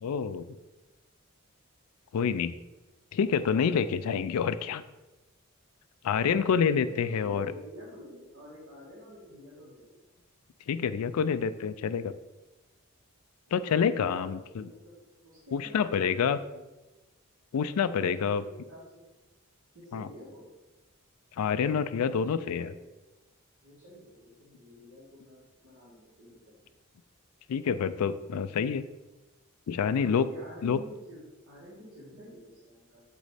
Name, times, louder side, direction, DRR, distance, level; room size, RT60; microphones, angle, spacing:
voice 1, 0.0-0.5 2.1-2.5 3.1-4.8 6.0-7.5 10.7-12.1 13.5-14.7 15.5-16.4 17.5-18.4 19.9-20.1 21.4-22.7 27.5-28.9 29.7-30.3 30.6-30.8, left 6 dB, 85° left, 13 dB, 0.4 m, -27 dB
voice 2, 6.2-9.9 13.5-14.9 15.2-16.6 17.9-19.0 19.7-20.5 21.5-22.9 23.6-26.7 30.0-33.0, equal, 80° right, -10 dB, 2.1 m, -49 dB
8.1 x 3.1 x 4.9 m, 1.1 s
head